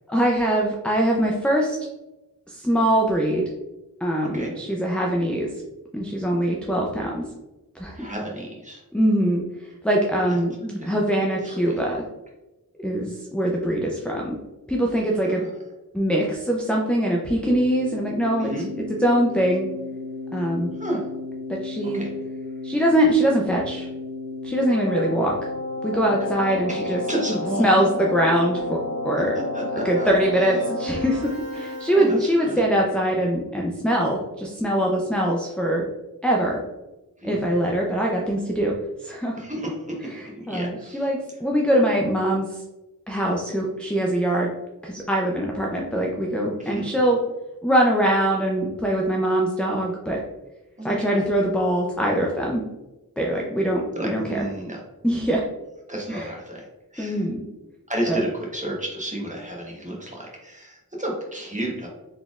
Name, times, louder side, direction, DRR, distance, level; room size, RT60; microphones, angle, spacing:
voice 1, 0.1-1.8 2.5-3.4 4.0-5.5 5.9-7.2 7.8-8.1 8.9-10.5 10.8-12.0 12.8-14.4 14.7-15.4 15.9-18.5 19.0-19.7 20.3-20.7 21.5-22.0 22.6-23.9 24.4-25.5 25.8-27.0 27.6-29.3 29.8-35.9 36.2-36.6 37.2-38.7 39.0-39.4 40.2-42.6 43.1-44.5 44.8-47.2 47.6-50.2 50.8-52.6 53.2-54.5 55.0-55.4 56.1-56.3 57.0-57.4 58.1-58.2, right 1 dB, 5° left, -1 dB, 0.4 m, -23 dB
voice 2, 7.9-8.8 10.3-11.3 11.6-11.8 15.2-15.5 18.4-18.7 20.8-21.0 21.9-22.1 26.7-26.8 27.1-27.6 29.5-30.1 31.9-32.6 37.2-37.4 39.3-39.7 40.4-41.0 46.6-46.9 50.8-51.2 53.9-54.8 55.9-56.6 56.9-57.2 57.9-61.9, right 1 dB, 20° right, -2 dB, 1.1 m, -31 dB
Keyboard (musical), 17.5-32.5, left 2 dB, 45° right, 0.7 m, -32 dB
4.2 x 3.3 x 2.4 m, 1.0 s
wide cardioid pair, 55°, 37 cm